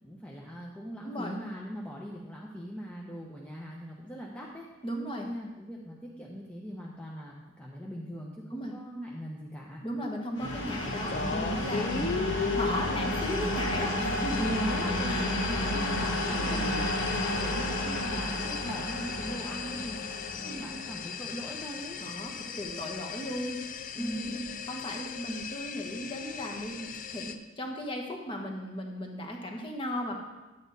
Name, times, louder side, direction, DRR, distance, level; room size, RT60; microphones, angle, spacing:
voice 1, 0.0-4.7 5.2-9.8 11.9-12.4 14.4-22.0 23.9-24.4, equal, 5° left, -3 dB, 0.9 m, -40 dB
voice 2, 1.0-1.4 4.8-5.3 8.5-8.7 9.8-14.5 14.9-15.3 16.3-16.8 20.4-20.8 22.0-24.4 24.7-26.8 27.1-30.1, equal, 25° left, 1 dB, 1.3 m, -36 dB
sound 1, 10.3-22.0, left 1 dB, 60° left, 2.0 m, -32 dB
sound 2, 10.7-27.3, left 6 dB, 40° left, 0.5 m, -38 dB
10.5 x 8.6 x 4.1 m, 1.1 s
head